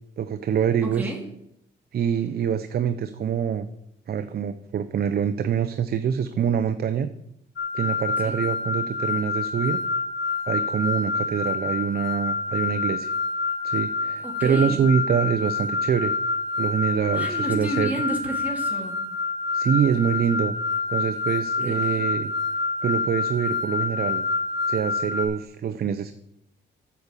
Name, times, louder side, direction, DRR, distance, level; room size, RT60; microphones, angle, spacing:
voice 1, 0.2-1.0 1.9-3.7 4.1-7.1 7.7-9.8 10.5-13.1 13.6-16.1 16.6-17.9 19.5-20.5 20.9-22.3 22.8-24.2 24.7-26.1, right 8 dB, 50° right, 10 dB, 0.7 m, -25 dB
voice 2, 0.8-1.2 8.2-8.4 14.2-14.8 17.1-19.0 21.6-22.1, right 1 dB, 10° right, -1 dB, 2.7 m, -31 dB
sound 1, 7.6-25.3, left 4 dB, 60° left, 4.4 m, -27 dB
8.6 x 7.0 x 8.3 m, 0.77 s
cardioid pair, 90°, 20 cm